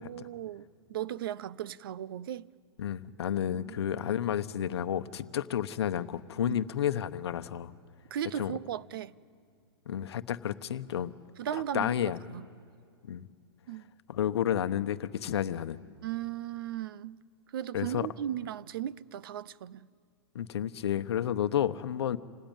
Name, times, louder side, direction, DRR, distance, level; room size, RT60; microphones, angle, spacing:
voice 1, 0.0-2.5 3.5-3.8 6.5-6.6 8.1-9.1 11.4-12.5 13.7-13.8 16.0-17.2 17.5-19.9, right 11 dB, 55° right, 0.6 m, -37 dB
voice 2, 2.8-7.7 8.3-8.5 9.9-11.1 11.5-12.2 13.1-13.3 14.1-15.8 17.7-18.1 20.3-22.2, left 10 dB, 70° left, 1.0 m, -31 dB
27.0 x 18.5 x 9.1 m
hypercardioid pair, 160°, 14 cm